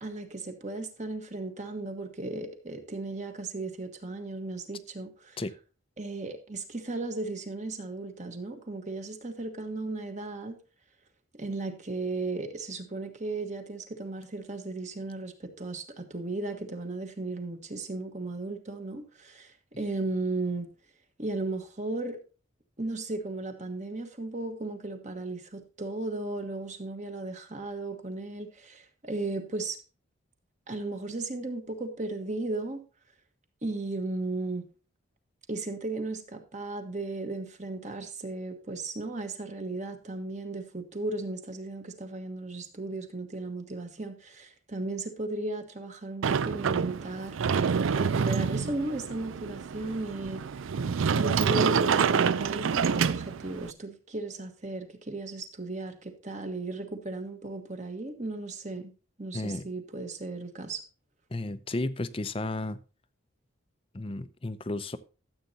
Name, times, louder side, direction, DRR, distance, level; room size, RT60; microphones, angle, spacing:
voice 1, 0.0-5.4 6.0-10.6 11.3-20.7 21.2-22.2 22.8-29.8 30.7-32.8 33.6-34.7 35.5-50.4 51.1-58.9 59.2-60.8, right 2 dB, 35° right, 6 dB, 1.4 m, -35 dB
Sliding door, 46.2-53.7, right 6 dB, 80° right, 0.4 m, -27 dB
voice 2, 59.3-59.7 61.3-62.8 63.9-65.0, left 2 dB, 25° left, 13 dB, 0.5 m, -33 dB
13.0 x 8.0 x 2.8 m, 0.34 s
head